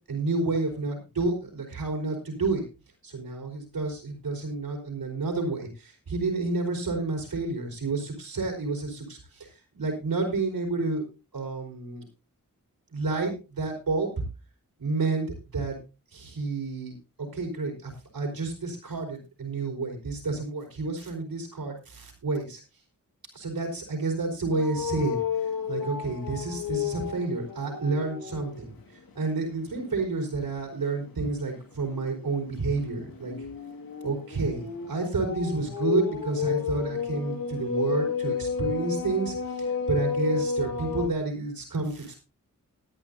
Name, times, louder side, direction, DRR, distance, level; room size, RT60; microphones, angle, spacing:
voice 1, 0.1-2.6 3.0-9.5 9.7-11.0 11.3-12.1 12.9-14.1 14.8-15.8 16.1-22.6 23.3-25.2 25.7-28.7 29.1-33.5 34.0-42.2, right 3 dB, 90° right, 1 dB, 4.9 m, -30 dB
sound 1, 24.5-28.7 29.1-29.4 31.8-41.1, left 7 dB, 80° left, 2.0 m, -32 dB
19.5 x 9.9 x 2.7 m, 0.30 s
cardioid pair, 50°, 34 cm